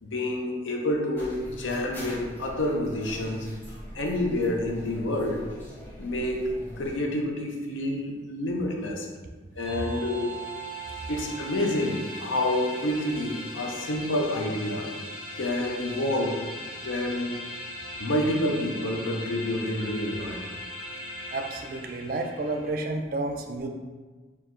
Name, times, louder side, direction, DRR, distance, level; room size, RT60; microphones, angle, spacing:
voice 1, 0.0-3.5 3.9-5.5 6.0-6.5 6.8-9.1 9.6-10.3 11.1-14.9 15.4-16.5 16.8-17.4 18.0-20.5, left 1 dB, 90° left, 1 dB, 0.6 m, -28 dB
sound 1, 1.2-6.9, equal, 10° left, 0.8 m, -42 dB
sound 2, 9.6-22.7, equal, 25° left, 1.1 m, -39 dB
voice 2, 21.3-23.7, right 2 dB, 50° right, 4 dB, 0.4 m, -31 dB
4.5 x 2.4 x 3.7 m, 1.3 s
head